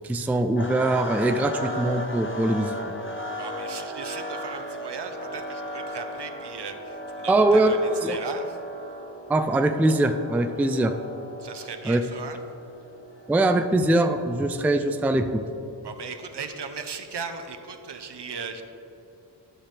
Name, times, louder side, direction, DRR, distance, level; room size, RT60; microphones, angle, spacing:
voice 1, 0.0-2.9 7.3-7.8 8.0-8.2 9.3-10.9 11.9-12.0 13.3-15.4, right 2 dB, 5° right, 7 dB, 0.3 m, -22 dB
sound 1, 0.6-14.7, equal, 30° left, 0.8 m, -36 dB
voice 2, 3.3-8.6 11.4-12.4 15.8-18.6, right 5 dB, 70° right, 7 dB, 0.7 m, -37 dB
11.5 x 5.8 x 3.3 m, 2.9 s
wide cardioid pair, 60°, 44 cm